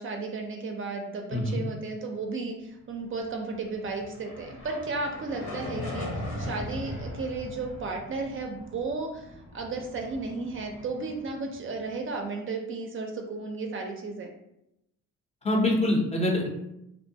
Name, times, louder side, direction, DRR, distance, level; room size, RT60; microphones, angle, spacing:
voice 1, 0.0-14.3, right 3 dB, 45° right, 2 dB, 0.5 m, -34 dB
voice 2, 1.3-1.6 15.4-16.5, left 1 dB, 20° left, 0 dB, 0.6 m, -24 dB
sound 1, 3.5-11.9, left 1 dB, 70° left, 1.0 m, -39 dB
2.6 x 2.2 x 2.7 m, 0.83 s
cardioid pair, 90°, 30 cm